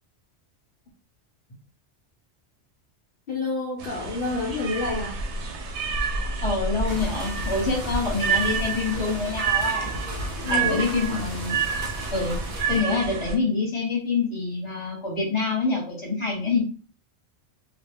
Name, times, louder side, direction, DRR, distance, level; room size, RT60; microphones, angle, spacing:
voice 1, 3.3-5.2 10.4-10.9, left 3 dB, 55° left, -3 dB, 0.9 m, -28 dB
sound 1, 3.8-13.4, right 5 dB, 90° right, 0.9 m, -29 dB
voice 2, 6.4-9.9 10.5-11.6 12.1-12.4 12.7-16.6, left 4 dB, 25° left, -2 dB, 1.1 m, -26 dB
sound 2, 6.9-12.8, equal, 50° right, 0.7 m, -35 dB
2.3 x 2.2 x 3.5 m, 0.39 s
omnidirectional pair, 1.1 m